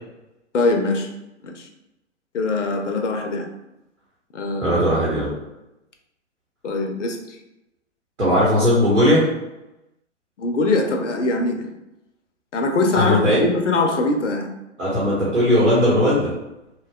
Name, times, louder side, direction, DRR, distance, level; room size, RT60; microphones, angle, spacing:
voice 1, 0.5-1.1 1.4-1.7 2.3-3.5 4.3-5.2 6.6-7.4 10.4-11.7 12.5-14.5, left 3 dB, 75° left, 4 dB, 0.6 m, -22 dB
voice 2, 4.6-5.3 8.2-9.2 12.9-13.4 14.8-16.3, equal, 85° right, -7 dB, 1.0 m, -18 dB
3.2 x 2.2 x 2.2 m, 0.93 s
figure-of-eight pair, 110°, 37 cm